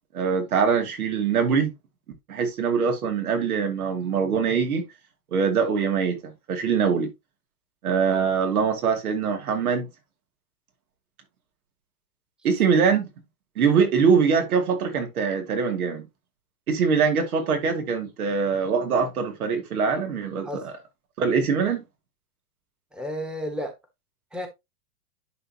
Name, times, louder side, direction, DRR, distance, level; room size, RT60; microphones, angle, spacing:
voice 1, 0.1-1.7 2.3-4.8 5.3-7.1 7.8-9.9 12.4-13.1 13.6-16.0 16.7-20.5 21.2-21.8, right 6 dB, 85° right, 2.7 m, -23 dB
voice 2, 22.9-23.7 24.3-24.5, equal, ahead, 1.2 m, -32 dB
11.0 x 3.9 x 2.9 m
hypercardioid pair, 130°, 43 cm